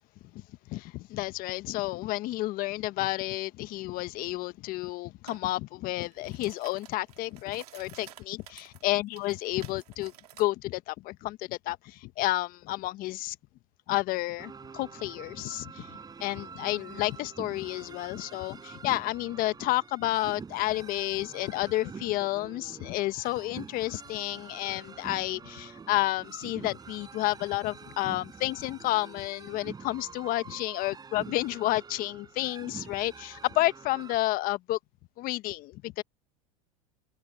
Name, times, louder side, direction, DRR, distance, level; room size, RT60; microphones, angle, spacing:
voice 1, 0.3-10.1 10.4-13.4 13.9-34.8 35.2-36.0, left 18 dB, 50° left, 1.3 m, -31 dB
sound 1, 5.3-5.4 5.9-10.5, right 12 dB, 90° right, 3.2 m, -52 dB
sound 2, 14.4-34.1, right 5 dB, 20° right, 4.7 m, -46 dB
hypercardioid pair, 100°, 19 cm